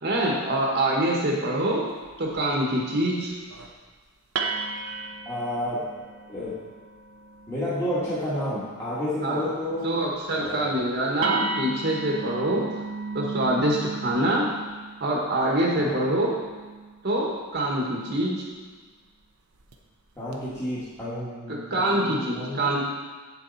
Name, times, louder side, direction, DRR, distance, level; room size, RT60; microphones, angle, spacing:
voice 1, 0.0-1.9 2.2-3.3 9.2-9.4 9.8-12.6 13.1-14.5 15.0-16.3 17.0-18.4 21.5-22.8, right 1 dB, 50° right, -2 dB, 1.5 m, -25 dB
sound 1, 2.0-2.5 3.3-3.7 4.4-8.7 10.3-10.5 10.8-10.9 11.2-18.3 19.5-19.7 20.3-20.8, right 3 dB, 75° right, 0.9 m, -35 dB
voice 2, 5.3-5.8 6.3-6.5 7.5-10.0 10.3-10.8 12.4-12.6 15.7-15.9 20.2-22.7, left 1 dB, 15° left, -11 dB, 1.8 m, -31 dB
8.2 x 7.3 x 4.1 m, 1.4 s
head